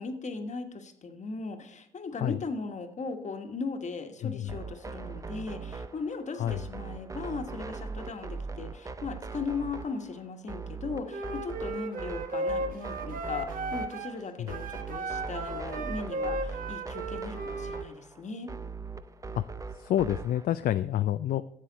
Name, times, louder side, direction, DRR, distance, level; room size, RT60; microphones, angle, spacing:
voice 1, 0.0-18.5, left 4 dB, 45° left, 6 dB, 1.3 m, -38 dB
voice 2, 4.2-4.6 6.3-6.6 14.4-14.6 19.3-19.4 19.7-21.4, left 12 dB, 60° left, 12 dB, 0.4 m, -28 dB
sound 1, 4.5-20.4, right 4 dB, 20° right, 0.6 m, -40 dB
Wind instrument woodwind instrument, 11.1-14.2 14.5-17.9, right 2 dB, 55° right, 1.1 m, -35 dB
11.5 x 7.4 x 4.0 m, 0.72 s
supercardioid pair, 65°, 17 cm